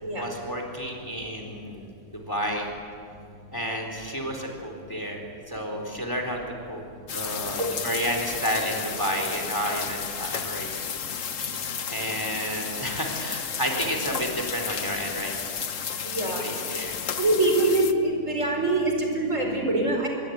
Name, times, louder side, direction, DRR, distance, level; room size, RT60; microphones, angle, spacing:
voice 1, 0.1-2.7 3.5-5.2 5.5-6.4 6.7-10.7 11.9-15.3 16.4-16.9, equal, 15° left, 2 dB, 4.0 m, -31 dB
sound 1, 7.1-17.9, left 7 dB, 65° left, 1.4 m, -33 dB
voice 2, 16.0-16.4 17.2-20.1, right 2 dB, 60° right, 2 dB, 5.3 m, -24 dB
26.5 x 22.5 x 9.5 m, 2.3 s
omnidirectional pair, 1.5 m